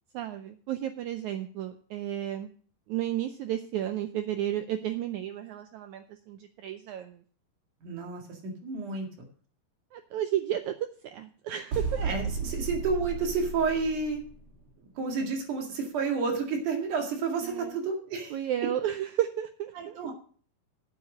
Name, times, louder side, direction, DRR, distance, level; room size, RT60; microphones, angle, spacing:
voice 1, 0.1-2.5 2.9-7.2 9.9-12.2 17.4-17.8 18.3-20.0, right 11 dB, 90° right, 8 dB, 1.7 m, -33 dB
voice 2, 7.8-9.1 12.0-14.2 15.0-18.4 19.8-20.1, right 4 dB, 60° right, 2 dB, 3.4 m, -30 dB
sound 1, 11.7-14.4, right 4 dB, 40° right, 3.3 m, -34 dB
8.9 x 8.6 x 6.2 m, 0.43 s
omnidirectional pair, 4.1 m